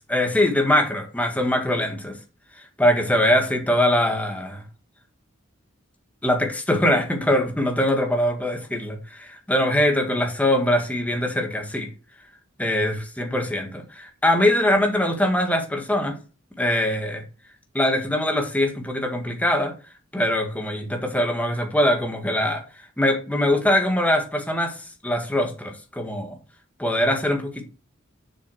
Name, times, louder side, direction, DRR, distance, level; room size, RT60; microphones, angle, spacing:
voice 1, 0.1-2.1 2.8-4.6 6.2-11.9 12.6-16.2 16.6-17.2 17.7-19.7 20.1-22.6 23.0-26.4 26.8-27.6, left 1 dB, 5° left, 1.8 m, -22 dB
7.4 x 6.1 x 6.4 m
head